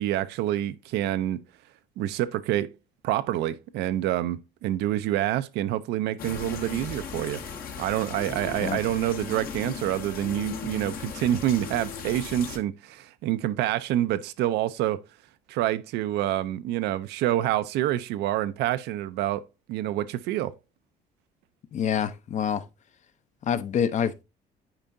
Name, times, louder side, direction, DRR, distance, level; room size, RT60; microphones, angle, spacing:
voice 1, 0.0-1.4 2.0-2.7 3.0-7.4 7.8-15.0 15.5-19.4 19.7-20.5, right 13 dB, 85° right, 0.5 m, -27 dB
sound 1, 6.2-12.6, left 6 dB, 60° left, 1.1 m, -37 dB
voice 2, 8.5-8.8 21.7-22.6 23.4-24.2, left 8 dB, 45° left, 0.6 m, -27 dB
8.8 x 4.5 x 2.6 m
cardioid pair, 110°, 17 cm